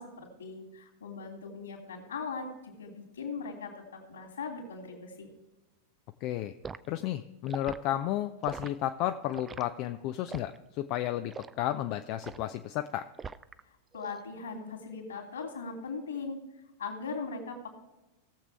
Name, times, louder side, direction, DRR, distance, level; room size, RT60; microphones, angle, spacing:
voice 1, 0.0-5.3 13.9-16.4 16.8-17.7, left 4 dB, 70° left, 1 dB, 3.0 m, -39 dB
voice 2, 6.2-6.5 6.9-11.3 11.6-13.1, left 13 dB, 45° left, 8 dB, 0.5 m, -32 dB
Liquid, 6.6-6.9 7.5-7.8 8.4-8.7 9.3-9.6 10.3-10.6 11.3-11.6 12.2-12.5 13.2-13.6 13.9-14.2, right 5 dB, 20° right, 0.4 m, -41 dB
18.0 x 7.4 x 3.5 m, 1.0 s
figure-of-eight pair, 90°, 0 cm